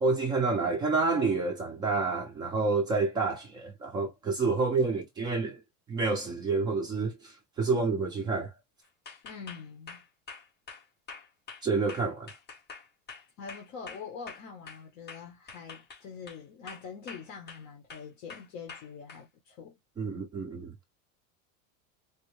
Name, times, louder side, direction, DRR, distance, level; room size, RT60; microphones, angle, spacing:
voice 1, 0.0-5.6 5.9-8.5 11.6-12.3 20.0-20.7, right 4 dB, 10° right, 0.3 m, -28 dB
sound 1, 9.1-14.8 15.1-16.4 16.7-17.6 17.9-19.2, left 5 dB, 25° left, 2.0 m, -46 dB
voice 2, 9.2-10.0 13.4-19.8, left 6 dB, 45° left, 1.3 m, -44 dB
4.2 x 2.7 x 3.2 m
supercardioid pair, 170°, 41 cm